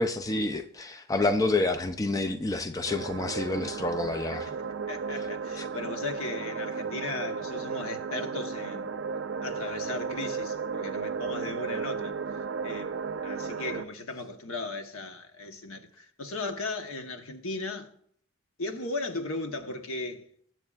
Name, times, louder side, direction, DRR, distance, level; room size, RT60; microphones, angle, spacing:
voice 1, 0.0-4.5, left 2 dB, 15° left, 0.4 m, -28 dB
sound 1, 2.9-13.9, right 5 dB, 55° right, 0.4 m, -34 dB
voice 2, 4.9-8.9 9.4-13.0 13.2-17.9 18.6-20.3, left 3 dB, 85° left, 1.1 m, -36 dB
20.5 x 7.9 x 2.4 m
head